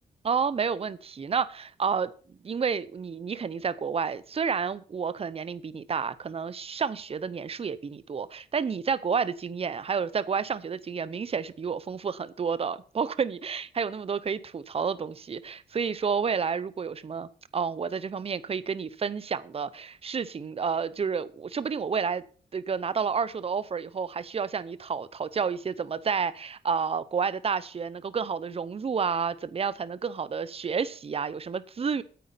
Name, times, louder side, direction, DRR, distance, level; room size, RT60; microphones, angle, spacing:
voice 1, 0.2-22.2 22.5-32.0, right 6 dB, 35° right, 0.7 m, -30 dB
9.4 x 8.3 x 5.6 m
wide cardioid pair, 110°, 17 cm